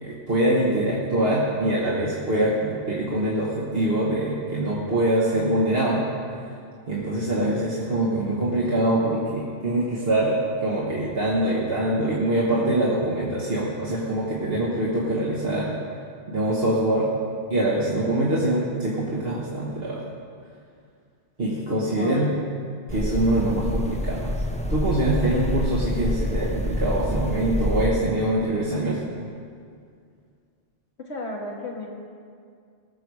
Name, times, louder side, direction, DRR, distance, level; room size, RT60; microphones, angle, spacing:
voice 1, 0.0-6.1 6.4-6.5 6.9-15.8 16.3-17.1 17.5-20.0 21.4-22.3 22.9-24.4 24.7-29.0, right 1 dB, 55° right, -5 dB, 1.5 m, -24 dB
voice 2, 21.9-22.3 31.0-31.9, left 1 dB, 70° left, -1 dB, 1.9 m, -33 dB
sound 1, 22.9-27.9, left 1 dB, 10° left, 0.5 m, -27 dB
19.0 x 6.9 x 4.8 m, 2.2 s
omnidirectional pair, 1.2 m